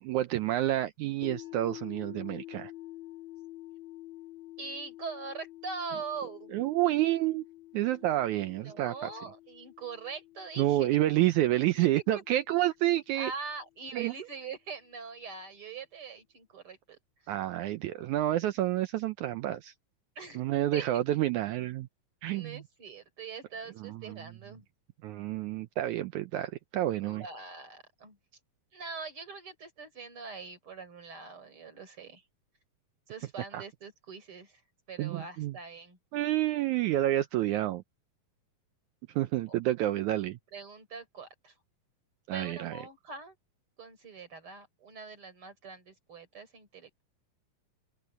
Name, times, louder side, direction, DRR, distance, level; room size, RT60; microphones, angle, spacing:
voice 1, 0.0-2.7 6.5-7.4 7.7-8.9 10.6-13.3 13.9-14.1 17.3-19.7 20.4-21.9 22.2-22.6 23.8-24.2 25.0-27.2 33.5-33.6 35.0-35.6 36.1-37.8 39.2-40.4 42.3-42.8, right 14 dB, 85° right, 1.7 m, -29 dB
sound 1, 1.2-13.3, left 16 dB, 45° left, 5.6 m, -49 dB
voice 2, 4.6-6.5 8.6-10.9 11.8-12.2 13.1-17.0 20.1-20.5 20.7-20.8 22.3-24.6 27.0-28.2 28.7-32.2 33.1-34.6 34.9-36.0 40.5-41.5 42.3-43.4 43.8-47.0, right 5 dB, 35° right, 4.9 m, -42 dB
open air
omnidirectional pair, 4.1 m